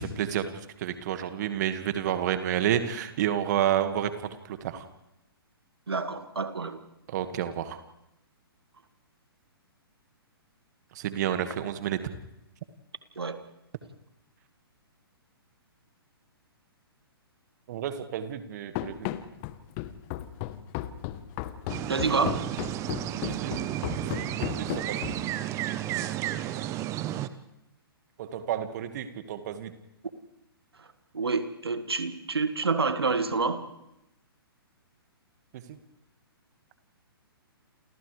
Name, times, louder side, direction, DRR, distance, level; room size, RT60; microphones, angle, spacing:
voice 1, 0.0-4.9 7.1-7.8 10.9-12.0 17.7-19.1 23.2-23.5 23.9-25.2 28.2-29.7 35.5-35.8, right 10 dB, 45° right, 9 dB, 1.9 m, -30 dB
voice 2, 5.9-6.8 13.2-13.4 21.9-22.5 31.1-33.6, right 4 dB, 80° right, 9 dB, 2.0 m, -28 dB
Run, 18.8-25.4, left 14 dB, 30° left, 1.1 m, -35 dB
sound 1, 21.7-27.3, right 13 dB, 25° right, 0.9 m, -32 dB
30.0 x 28.5 x 3.4 m, 0.88 s
figure-of-eight pair, 120°, 13 cm